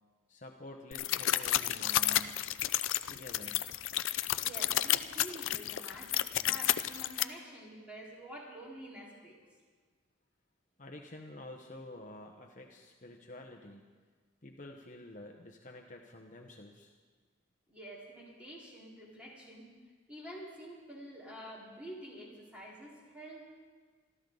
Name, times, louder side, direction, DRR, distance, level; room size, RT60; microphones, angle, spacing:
voice 1, 0.3-2.4 3.1-3.6 10.8-13.8 14.4-16.9, left 1 dB, 40° left, 2 dB, 1.1 m, -49 dB
sound 1, 0.9-7.2, left 13 dB, 85° left, 0.5 m, -31 dB
voice 2, 4.4-9.4 17.7-19.6 20.1-23.4, equal, 5° right, -5 dB, 4.3 m, -48 dB
25.5 x 13.5 x 4.0 m, 1.5 s
head